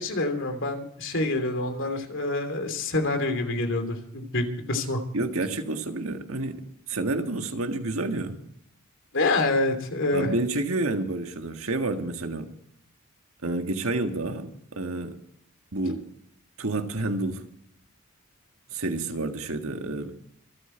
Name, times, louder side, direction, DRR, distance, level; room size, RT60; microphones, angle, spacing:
voice 1, 0.0-5.0 9.1-10.3, left 2 dB, 65° left, 3.0 m, -27 dB
voice 2, 5.1-6.6 6.9-8.5 10.1-12.5 13.4-15.2 15.7-16.0 16.6-17.4 18.7-20.1, right 2 dB, 75° right, 1.8 m, -29 dB
26.0 x 8.9 x 4.5 m
head